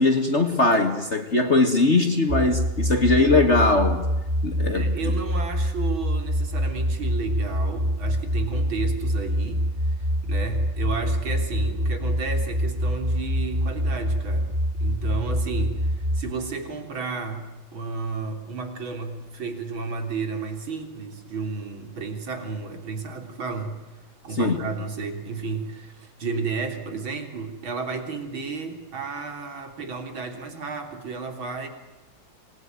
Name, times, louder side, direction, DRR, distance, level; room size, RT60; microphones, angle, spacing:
voice 1, 0.0-4.1 4.4-5.2 24.4-24.7, left 2 dB, 35° left, 2.1 m, -21 dB
sound 1, 2.3-16.3, equal, 35° right, 0.9 m, -25 dB
voice 2, 4.7-9.7 10.0-14.5 14.8-17.5 17.7-23.8 24.2-31.7, right 4 dB, 70° right, 4.2 m, -32 dB
28.5 x 21.5 x 9.4 m
omnidirectional pair, 2.2 m